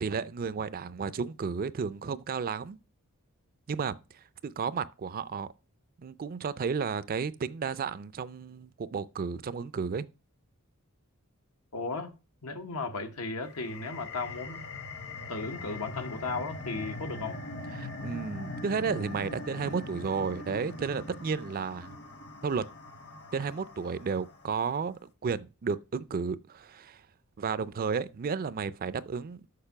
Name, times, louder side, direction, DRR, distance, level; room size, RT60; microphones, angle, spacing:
voice 1, 0.0-2.8 3.7-3.9 4.4-5.5 6.0-10.1 17.7-22.0 22.4-22.6 23.3-27.0 27.4-29.4, right 5 dB, 40° right, 0.4 m, -32 dB
voice 2, 11.7-12.1 12.4-14.6 15.3-17.4, left 3 dB, 90° left, 1.3 m, -35 dB
sound 1, 13.4-24.6, left 2 dB, 50° left, 1.1 m, -42 dB
6.6 x 5.3 x 5.8 m
head